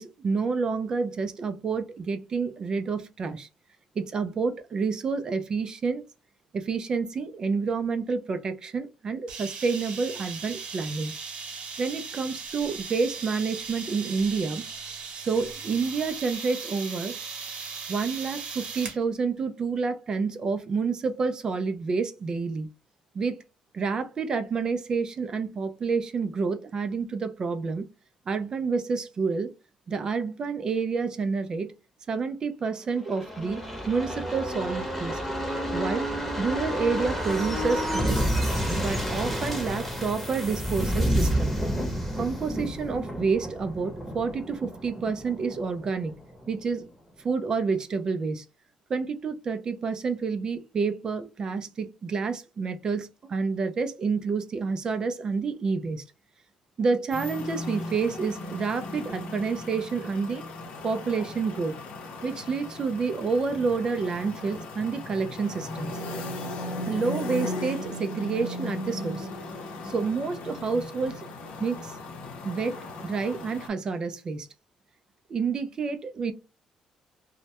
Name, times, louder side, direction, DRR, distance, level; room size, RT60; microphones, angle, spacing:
voice 1, 0.0-3.5 4.0-6.0 6.5-11.1 11.8-14.6 15.1-17.2 17.9-22.7 23.1-23.4 23.7-27.9 28.3-29.5 29.9-31.7 32.1-35.2 35.7-36.1 36.4-38.2 38.8-41.6 42.2-46.1 46.5-46.9 47.2-48.5 48.9-56.0 56.8-60.4 60.8-61.8 62.2-65.9 66.9-69.3 69.8-71.3 71.6-72.0 72.4-72.8 73.0-74.5 75.3-76.3, right 4 dB, 35° right, 0.3 m, -29 dB
sound 1, 9.3-19.0, right 5 dB, 60° right, 0.8 m, -38 dB
sound 2, 33.0-46.5 46.8-46.9, equal, ahead, 0.8 m, -30 dB
sound 3, 57.1-73.7, left 2 dB, 85° left, 0.6 m, -37 dB
2.1 x 2.1 x 2.8 m
cardioid pair, 120°, 2 cm